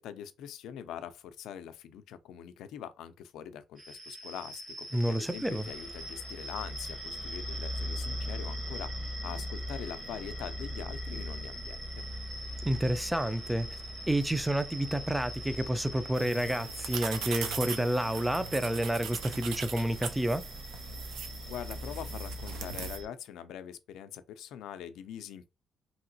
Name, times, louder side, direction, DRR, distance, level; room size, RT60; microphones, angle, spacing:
voice 1, 0.0-12.0 21.4-25.5, left 9 dB, 85° left, 0.4 m, -43 dB
sound 1, 3.8-23.1, equal, 35° right, 1.0 m, -40 dB
voice 2, 4.9-5.7 12.6-13.7 14.1-20.4, right 1 dB, 5° right, 0.3 m, -29 dB
sound 2, 16.1-23.0, right 6 dB, 90° right, 0.5 m, -40 dB
3.0 x 2.8 x 2.7 m
cardioid pair, 90°, 0 cm